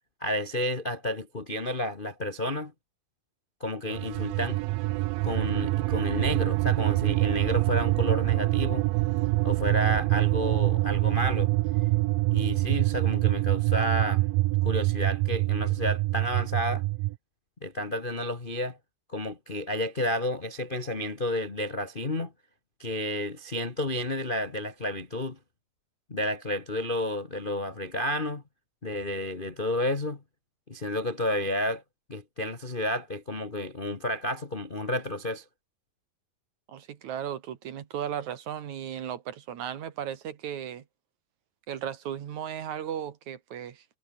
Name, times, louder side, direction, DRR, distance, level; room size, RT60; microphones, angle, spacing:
voice 1, 0.2-2.7 3.6-4.6 5.2-8.9 9.4-11.5 12.3-14.2 14.6-16.8 17.6-18.8 19.1-22.3 22.8-25.4 26.1-28.4 28.8-30.2 30.7-31.8 32.1-35.4, left 1 dB, 80° left, 0.4 m, -31 dB
sound 1, 3.9-17.2, right 21 dB, 85° right, 2.4 m, -25 dB
voice 2, 36.7-40.8 41.7-43.8, right 9 dB, 60° right, 2.9 m, -36 dB
omnidirectional pair, 4.0 m